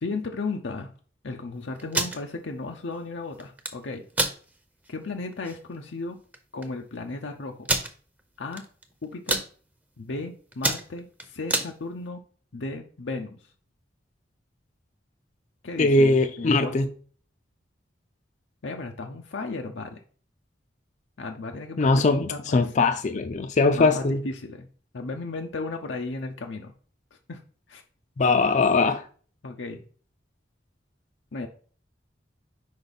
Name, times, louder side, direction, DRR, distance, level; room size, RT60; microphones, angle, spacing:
voice 1, 0.0-0.9 1.2-4.0 4.9-6.2 6.5-7.7 8.4-8.6 9.0-9.4 10.0-12.2 12.5-13.4 15.6-16.7 18.6-20.0 21.2-22.7 23.7-24.7 24.9-26.7 27.3-27.4 27.7-27.8 29.4-29.8 31.3-31.5, left 3 dB, 90° left, 0.7 m, -35 dB
sound 1, 1.8-2.2 3.4-3.7 4.1-4.4 4.9-5.0 5.3-5.5 6.3-6.4 6.6-6.7 7.6-7.9 8.5-8.8 9.1-9.5 10.0-10.2 10.5-11.7, right 2 dB, 10° right, 0.6 m, -26 dB
voice 2, 15.8-16.9 21.8-24.2 28.2-29.0, left 3 dB, 40° left, 0.4 m, -21 dB
5.2 x 4.9 x 4.1 m
head